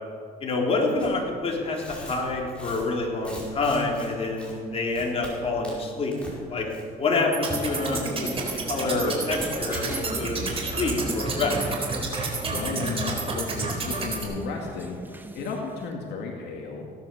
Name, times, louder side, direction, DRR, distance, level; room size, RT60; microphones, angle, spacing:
voice 1, 0.4-6.1 6.5-6.7 7.0-11.5, left 3 dB, 35° left, -1 dB, 3.7 m, -27 dB
Tearing, 1.0-1.1 1.7-4.1 4.4-4.5 4.9-5.3 5.6-6.4 6.7-7.0 7.3-8.0 8.5-8.6 8.9-9.0 9.3-9.5 9.8-10.0, equal, 5° left, 4.9 m, -43 dB
sound 1, 7.3-14.2, right 3 dB, 35° right, 3.7 m, -30 dB
sound 2, 7.5-15.9, right 1 dB, 10° right, 1.3 m, -38 dB
voice 2, 12.5-15.0 15.3-16.9, left 4 dB, 75° left, 1 dB, 2.1 m, -33 dB
17.0 x 10.5 x 7.0 m, 2.2 s
cardioid pair, 110°, 17 cm